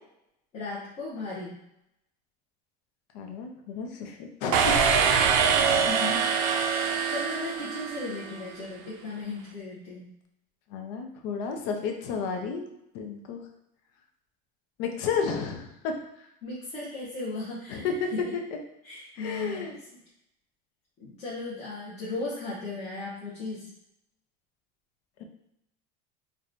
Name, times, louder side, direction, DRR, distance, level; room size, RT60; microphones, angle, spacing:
voice 1, 0.5-1.6 5.8-6.3 6.8-10.1 16.4-17.9 18.1-18.3 18.8-19.7 21.0-23.7, left 2 dB, 30° left, -7 dB, 0.8 m, -36 dB
voice 2, 3.1-5.3 10.7-12.6 12.9-13.4 14.8-16.0 17.7-18.1 19.2-19.8, left 5 dB, 70° left, 3 dB, 0.7 m, -32 dB
sound 1, 4.5-8.3, right 6 dB, 80° right, 0.5 m, -24 dB
4.6 x 2.2 x 2.5 m, 0.82 s
cardioid pair, 165°, 21 cm